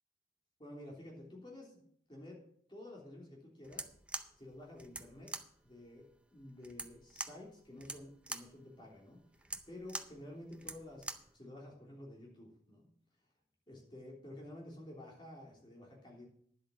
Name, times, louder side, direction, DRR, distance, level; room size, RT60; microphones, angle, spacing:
voice 1, 0.6-2.4 2.7-3.9 4.4-5.3 5.6-11.1 11.3-12.9 13.7-16.3, left 1 dB, 25° left, -1 dB, 3.2 m, -51 dB
sound 1, 3.6-11.4, right 2 dB, 5° right, 0.5 m, -45 dB
10.5 x 7.9 x 6.1 m, 0.65 s
head